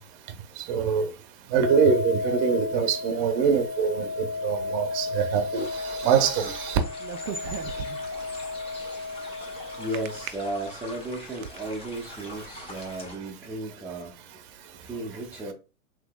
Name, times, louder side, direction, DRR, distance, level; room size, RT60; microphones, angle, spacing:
voice 1, 0.6-1.1 1.5-6.8 12.7-12.8, right 6 dB, 45° right, 0.7 m, -24 dB
sound 1, 1.6-10.2, left 3 dB, 55° left, 0.7 m, -33 dB
sound 2, 5.5-13.2, left 2 dB, 15° left, 1.0 m, -43 dB
sound 3, 7.0-8.2 9.9-10.3 10.9-11.6, right 9 dB, 85° right, 0.5 m, -36 dB
voice 2, 9.7-14.2 14.8-15.5, right 1 dB, 5° right, 0.6 m, -34 dB
3.7 x 2.9 x 2.2 m
hypercardioid pair, 105°, 40 cm